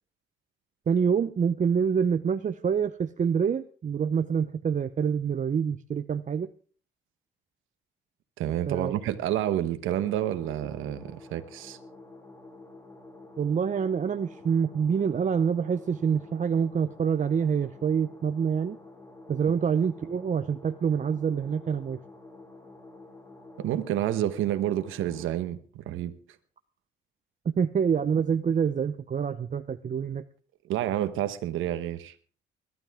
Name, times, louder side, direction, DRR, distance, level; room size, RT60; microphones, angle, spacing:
voice 1, 0.9-6.5 8.7-8.9 13.4-18.8 19.3-22.0 27.6-30.2, right 7 dB, 40° right, 10 dB, 0.7 m, -26 dB
voice 2, 8.4-11.8 23.6-26.1 30.7-32.1, right 12 dB, 90° right, 10 dB, 1.1 m, -29 dB
sound 1, 10.0-25.4, left 2 dB, 15° left, 3.0 m, -49 dB
22.0 x 12.0 x 3.6 m, 0.41 s
cardioid pair, 90°, 20 cm